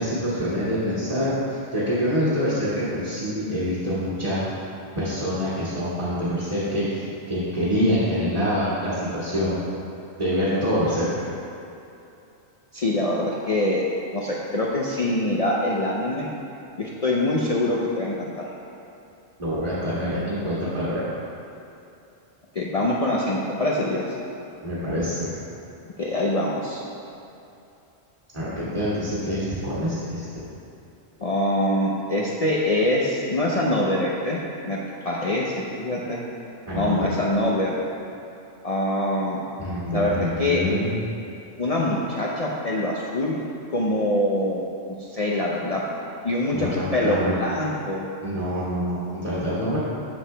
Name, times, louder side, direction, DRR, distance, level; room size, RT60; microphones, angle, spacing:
voice 1, 0.0-4.5 5.0-9.6 10.2-11.3 19.4-21.1 24.6-25.3 28.3-30.5 36.7-37.1 39.6-41.0 46.5-47.3 48.2-49.8, equal, 35° right, -12 dB, 1.9 m, -26 dB
voice 2, 12.7-13.8 14.1-16.3 16.8-18.5 22.5-24.0 26.0-26.8 31.2-34.8 35.0-36.2 36.7-37.8 38.6-39.4 39.9-40.6 41.6-43.4 43.7-44.6 45.0-45.8 46.2-48.1, left 1 dB, 40° left, -4 dB, 0.6 m, -24 dB
13.0 x 4.8 x 3.3 m, 2.8 s
omnidirectional pair, 1.1 m